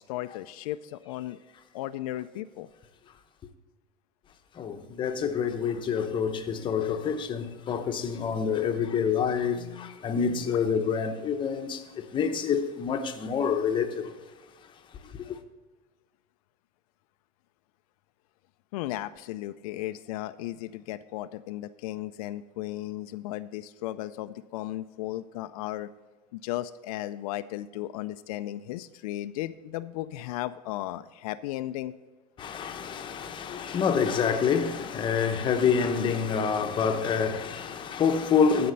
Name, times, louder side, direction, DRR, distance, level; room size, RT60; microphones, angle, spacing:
voice 1, 0.0-1.4 1.7-2.7 9.6-10.5 18.7-25.9 26.3-31.9, left 15 dB, 80° left, 0.4 m, -35 dB
voice 2, 4.5-14.2 15.0-15.4 32.4-38.7, left 6 dB, 25° left, 0.8 m, -27 dB
12.5 x 4.3 x 6.7 m
supercardioid pair, 140°, 19 cm